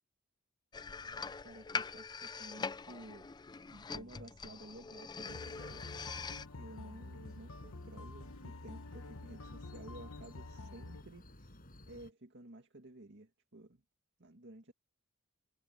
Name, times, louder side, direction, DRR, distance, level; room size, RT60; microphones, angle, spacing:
sound 1, 0.7-6.4, left 5 dB, 20° left, 0.4 m, -43 dB
voice 1, 1.0-3.3 3.7-5.8 6.6-11.6 11.9-13.8 14.2-14.7, right 1 dB, 55° right, 2.2 m, -53 dB
sound 2, 5.2-12.1, left 1 dB, 40° left, 5.6 m, -57 dB
sound 3, 5.3-11.0, left 2 dB, 65° left, 1.2 m, -48 dB
head